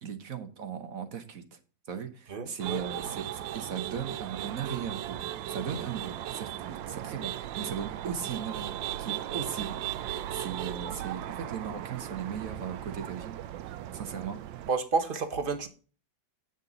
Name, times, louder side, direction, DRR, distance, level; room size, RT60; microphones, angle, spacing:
voice 1, 0.0-1.6 1.9-5.2 5.5-13.4 13.9-14.4, right 7 dB, 50° right, 1.4 m, -37 dB
voice 2, 2.3-3.2 13.9-14.0 14.7-15.7, right 4 dB, 35° right, 1.0 m, -31 dB
sound 1, 2.6-14.7, right 12 dB, 85° right, 1.4 m, -37 dB
9.0 x 6.8 x 3.9 m
omnidirectional pair, 2.0 m